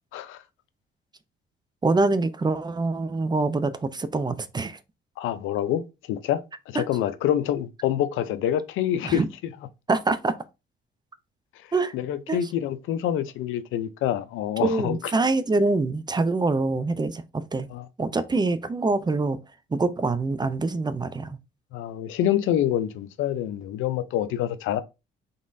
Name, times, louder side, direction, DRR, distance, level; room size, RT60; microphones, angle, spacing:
voice 1, 1.8-4.8 6.7-6.8 9.0-9.3 9.9-10.3 11.7-11.9 12.3-12.5 14.6-17.7 18.0-19.4 19.7-21.4, right 3 dB, 20° right, 0.5 m, -25 dB
voice 2, 5.2-5.8 6.1-6.4 6.7-9.2 11.9-15.0 17.7-17.9 21.7-24.8, left 11 dB, 85° left, 0.5 m, -26 dB
3.9 x 3.6 x 2.6 m
cardioid pair, 90°, 20 cm